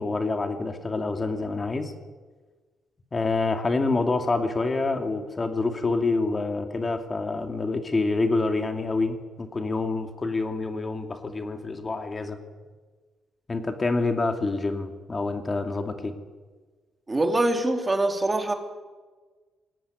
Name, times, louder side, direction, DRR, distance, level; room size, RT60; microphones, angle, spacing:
voice 1, 0.0-1.9 3.1-12.4 13.5-16.1, left 3 dB, 30° left, 6 dB, 2.5 m, -27 dB
voice 2, 17.1-18.5, right 2 dB, 20° right, 5 dB, 3.1 m, -24 dB
20.0 x 17.0 x 9.8 m, 1.3 s
cardioid pair, 85°, 0 cm